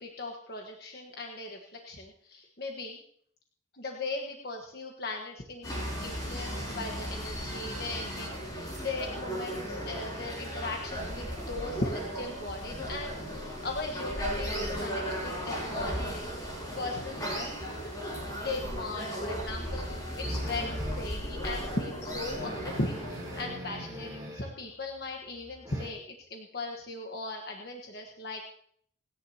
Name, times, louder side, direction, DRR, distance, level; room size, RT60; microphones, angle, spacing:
voice 1, 0.0-3.0 3.7-16.3 16.7-17.5 18.4-23.0 23.4-28.4, left 2 dB, 55° left, 1 dB, 1.4 m, -38 dB
sound 1, 5.6-23.4, equal, 20° left, 5.9 m, -36 dB
sound 2, 20.2-21.2 21.6-21.7 22.0-22.1 22.3-24.6 24.9-25.9, equal, 20° right, 4.6 m, -42 dB
28.0 x 10.5 x 2.9 m, 0.62 s
head